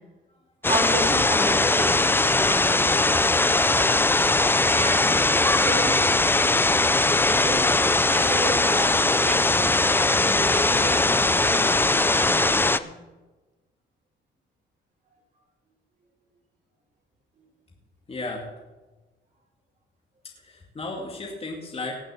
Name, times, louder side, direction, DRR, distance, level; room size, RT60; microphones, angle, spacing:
sound 1, 0.6-12.8, left 2 dB, 10° left, 0.5 m, -20 dB
voice 1, 0.6-3.2 4.7-5.2 5.6-6.0 7.2-13.0, right 2 dB, 40° right, 0 dB, 4.9 m, -33 dB
voice 2, 18.1-18.5 20.4-21.9, left 2 dB, 30° left, -1 dB, 2.3 m, -35 dB
18.5 x 6.3 x 7.0 m, 1.2 s
cardioid pair, 90°, 20 cm